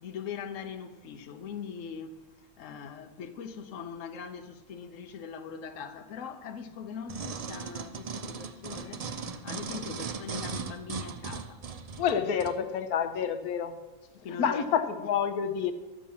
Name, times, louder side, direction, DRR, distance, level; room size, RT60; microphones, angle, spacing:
voice 1, 0.0-2.3 2.6-11.6 14.2-14.7 15.0-15.2, left 7 dB, 65° left, 1.2 m, -41 dB
sound 1, 7.1-12.6 13.2-13.3, right 5 dB, 75° right, 0.3 m, -38 dB
voice 2, 12.0-13.8 14.4-15.7, left 7 dB, 90° left, 1.3 m, -28 dB
12.0 x 7.5 x 7.0 m
omnidirectional pair, 1.5 m